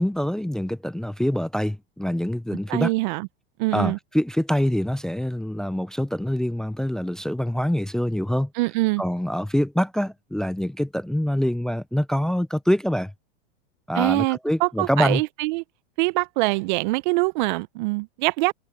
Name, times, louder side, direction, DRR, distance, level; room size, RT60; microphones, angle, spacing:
voice 1, 0.0-2.9 3.7-8.5 9.0-13.1 13.9-15.2, equal, ahead, 0.6 m, -25 dB
voice 2, 2.7-3.3 3.6-4.0 8.6-9.0 14.0-15.6 16.0-18.5, right 24 dB, 50° right, 0.7 m, -24 dB
hypercardioid pair, 125°, 30 cm